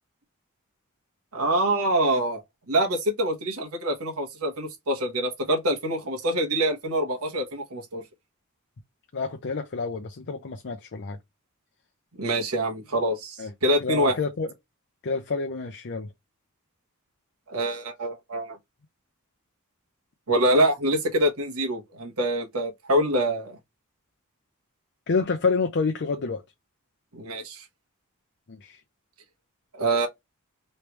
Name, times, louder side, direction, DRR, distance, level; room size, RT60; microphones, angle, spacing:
voice 1, 1.3-2.4 2.7-8.0 12.2-14.2 17.5-18.6 20.3-23.6 27.1-27.6 29.7-30.1, right 1 dB, 75° right, 1.2 m, -25 dB
voice 2, 9.1-11.2 13.4-13.5 13.8-14.5 15.0-16.1 25.1-26.4 28.5-28.8, left 4 dB, 55° left, 0.6 m, -28 dB
3.2 x 3.2 x 3.0 m
head